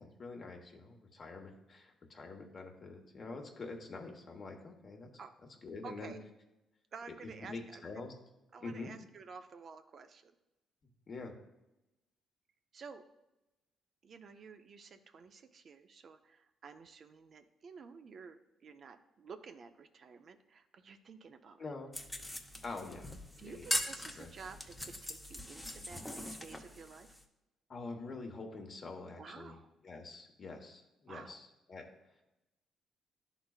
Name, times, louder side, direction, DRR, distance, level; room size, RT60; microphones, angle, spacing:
voice 1, 0.0-5.1 5.6-6.1 7.4-8.1 8.6-8.9 11.1-11.3 21.6-21.9 22.6-23.1 23.4-23.7 24.1-24.3 27.7-29.6 29.8-31.9, left 3 dB, 45° left, 3 dB, 1.2 m, -46 dB
voice 2, 5.8-6.2 6.9-7.9 8.5-10.3 12.7-13.0 14.0-21.6 23.4-27.2 29.2-29.7 31.1-31.4, right 5 dB, 55° right, 7 dB, 0.5 m, -52 dB
sound 1, 21.9-27.2, equal, 5° left, 0.8 m, -41 dB
11.0 x 4.0 x 2.4 m, 0.96 s
supercardioid pair, 70°, 0 cm